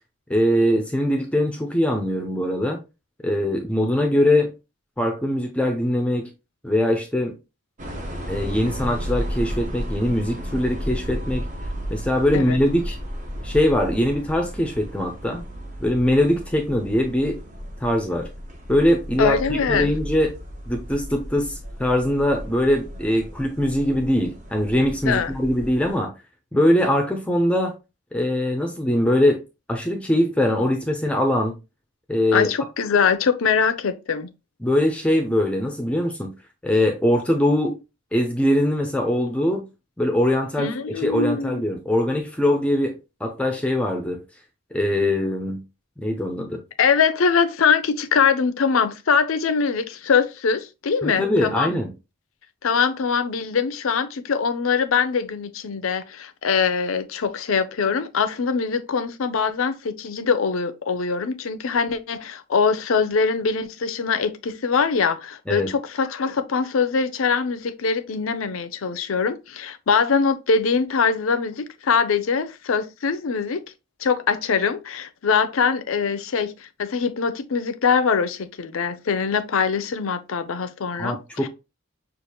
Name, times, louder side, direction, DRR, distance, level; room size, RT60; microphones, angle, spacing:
voice 1, 0.3-2.8 3.2-4.5 5.0-6.3 6.6-7.3 8.3-11.5 11.9-13.0 13.4-15.4 15.8-17.4 17.8-18.3 18.7-20.3 20.7-26.1 26.5-27.7 28.1-29.4 29.7-31.5 32.1-32.5 34.6-36.3 36.6-37.8 38.1-39.6 40.0-40.7 41.0-44.2 44.7-45.6 46.0-46.6 51.0-51.9 65.5-65.7 81.0-81.5, left 1 dB, 5° left, 0.5 m, -22 dB
sound 1, 7.8-25.9, equal, 35° right, 0.9 m, -33 dB
voice 2, 19.2-19.9 25.0-25.3 32.3-34.3 40.6-41.6 46.8-51.7 52.6-73.6 74.0-81.5, left 5 dB, 75° left, 0.5 m, -23 dB
6.4 x 2.5 x 2.9 m
head